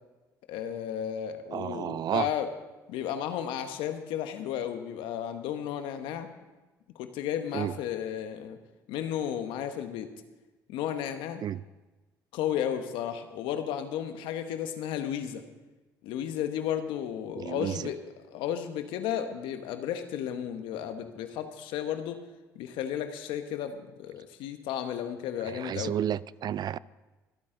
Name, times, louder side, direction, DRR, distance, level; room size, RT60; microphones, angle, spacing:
voice 1, 0.5-2.5 2.9-6.3 6.9-8.6 8.9-10.1 10.7-11.4 12.3-15.4 16.0-18.0 18.3-22.2 22.5-25.9, left 9 dB, 75° left, 8 dB, 1.1 m, -33 dB
voice 2, 1.5-2.3 7.5-7.7 11.4-11.6 17.4-17.9 25.5-26.8, right 10 dB, 50° right, 20 dB, 0.4 m, -31 dB
24.5 x 8.7 x 3.8 m, 1.1 s
hypercardioid pair, 60°, 9 cm